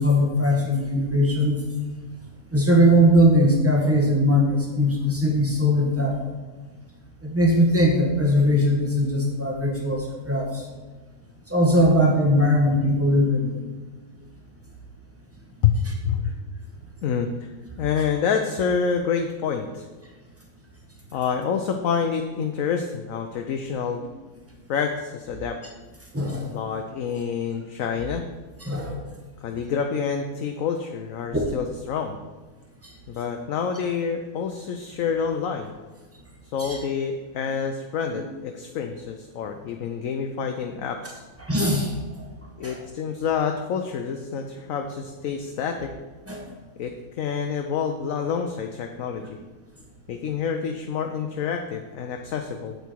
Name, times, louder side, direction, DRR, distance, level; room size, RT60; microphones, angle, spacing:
voice 1, 0.0-1.6 2.5-6.2 7.2-10.6 11.5-13.5 26.1-26.5 28.6-29.0 31.3-31.4 36.6-36.8 37.4-37.5 38.1-38.2 41.5-41.9 42.6-42.7 46.3-46.4, equal, 10° right, -1 dB, 1.6 m, -20 dB
voice 2, 17.0-17.5 17.8-19.9 21.1-24.0 24.7-25.6 26.5-28.3 29.4-32.2 33.1-35.7 36.5-41.2 42.6-45.9 46.8-49.4 50.1-52.8, left 6 dB, 65° left, 5 dB, 1.0 m, -27 dB
8.3 x 8.2 x 4.5 m, 1.3 s
omnidirectional pair, 1.7 m